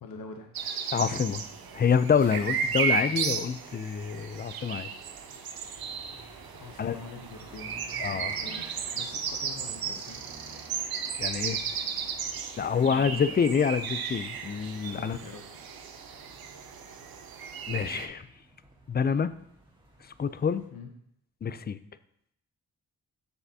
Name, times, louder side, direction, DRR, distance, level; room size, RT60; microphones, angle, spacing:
voice 1, 0.0-0.5 6.5-7.7 8.4-10.2 12.8-13.4 14.9-15.5 20.7-20.9, left 4 dB, 70° left, 4 dB, 0.8 m, -44 dB
sound 1, 0.5-18.1, right 6 dB, 75° right, 0.7 m, -34 dB
voice 2, 0.9-1.4 1.7-4.9 6.8-7.0 8.0-8.4 11.2-11.6 12.6-15.2 17.7-18.2 18.9-19.3 20.2-20.6 21.4-21.8, left 6 dB, 30° left, 14 dB, 0.4 m, -27 dB
sound 2, 1.3-20.7, right 1 dB, 15° right, 1.8 m, -53 dB
7.9 x 5.9 x 2.8 m, 0.73 s
cardioid pair, 55°, 36 cm